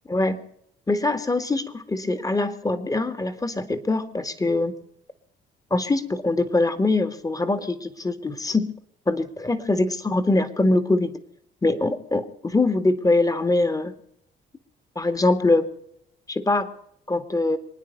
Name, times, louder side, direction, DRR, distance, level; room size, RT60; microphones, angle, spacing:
voice 1, 0.1-0.4 0.9-4.7 5.7-8.7 9.1-11.1 11.6-13.9 15.0-15.7 16.3-16.7 17.1-17.6, left 2 dB, 15° left, 11 dB, 1.9 m, -23 dB
27.0 x 9.8 x 5.4 m, 0.74 s
cardioid pair, 90°, 20 cm